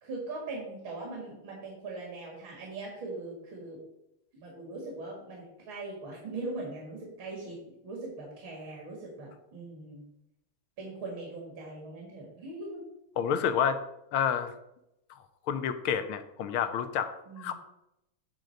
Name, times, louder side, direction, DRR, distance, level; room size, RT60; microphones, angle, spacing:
voice 1, 0.0-3.8 4.3-7.6 7.8-10.0 10.8-12.8 17.3-17.5, right 2 dB, 60° right, -1 dB, 2.7 m, -40 dB
voice 2, 13.2-13.8 14.1-14.5 15.5-17.5, left 8 dB, 80° left, 9 dB, 1.5 m, -29 dB
9.1 x 3.8 x 6.4 m, 0.85 s
omnidirectional pair, 2.4 m